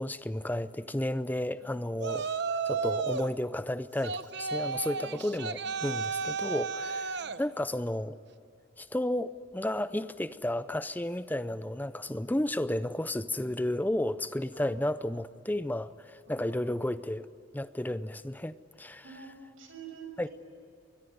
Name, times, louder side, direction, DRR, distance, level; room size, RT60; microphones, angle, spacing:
voice 1, 0.0-2.3 2.6-8.2 8.8-17.3 17.5-19.0 20.2-20.3, left 1 dB, 10° left, 0.5 m, -32 dB
Yell, 2.0-3.3 4.0-7.4, right 4 dB, 55° right, 0.9 m, -33 dB
voice 2, 5.0-5.9 7.2-7.4 13.4-13.6 14.5-14.8 16.3-16.8 19.0-20.3, right 5 dB, 80° right, 6.0 m, -49 dB
24.5 x 22.5 x 9.5 m
head